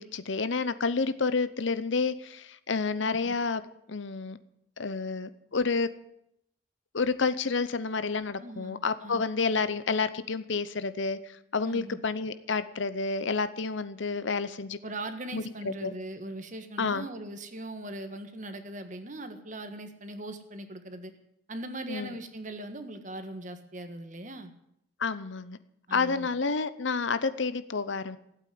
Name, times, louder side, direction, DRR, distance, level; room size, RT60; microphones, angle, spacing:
voice 1, 0.0-3.6 3.9-4.4 4.8-5.9 6.9-14.8 15.3-15.9 16.8-17.0 21.9-22.1 25.0-25.6 25.9-28.2, left 4 dB, 65° left, 0.8 m, -29 dB
voice 2, 3.0-3.3 8.4-9.2 11.6-12.0 14.8-21.1 21.5-24.5 25.9-26.3, right 1 dB, 40° right, 1.5 m, -40 dB
16.5 x 8.5 x 9.5 m
head